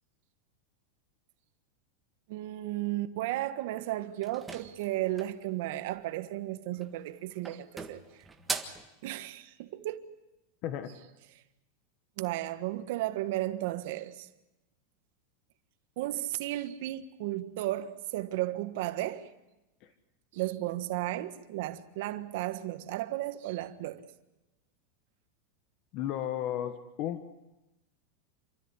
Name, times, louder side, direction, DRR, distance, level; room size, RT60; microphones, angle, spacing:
voice 1, 2.3-8.0 9.0-10.1 12.2-14.3 16.0-19.3 20.3-24.0, right 15 dB, 65° right, 1.5 m, -34 dB
sound 1, 4.2-5.5 6.7-7.1 7.4-8.9, right 4 dB, 10° right, 1.6 m, -39 dB
voice 2, 25.9-27.2, left 11 dB, 45° left, 1.3 m, -33 dB
28.0 x 13.5 x 9.8 m
supercardioid pair, 150°, 0 cm